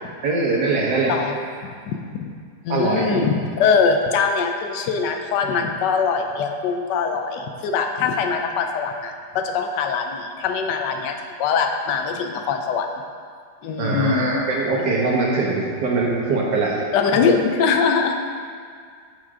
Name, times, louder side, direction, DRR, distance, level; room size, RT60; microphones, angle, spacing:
voice 1, 0.2-1.2 2.7-3.2 13.8-16.8, right 3 dB, 85° right, -3 dB, 1.8 m, -22 dB
voice 2, 1.9-2.3 2.6-11.1 11.4-12.9 13.6-14.4 16.9-18.1, left 5 dB, 85° left, 4 dB, 1.3 m, -22 dB
6.6 x 5.1 x 4.9 m, 2.1 s
omnidirectional pair, 1.8 m